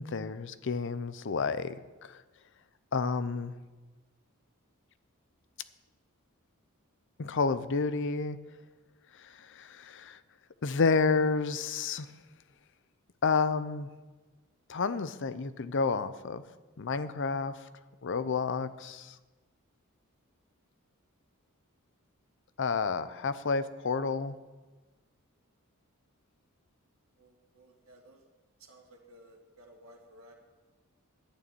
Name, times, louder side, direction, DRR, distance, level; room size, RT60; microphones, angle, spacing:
voice 1, 0.0-1.8 2.0-2.2 2.9-3.6 7.2-8.4 9.2-10.2 10.6-12.1 13.2-13.9 14.7-16.4 16.8-17.5 18.0-19.1 22.6-24.4, left 4 dB, 55° left, 13 dB, 0.6 m, -30 dB
voice 2, 27.2-28.2 28.7-30.3, equal, 70° right, -1 dB, 2.0 m, -56 dB
11.5 x 6.8 x 9.0 m, 1.2 s
head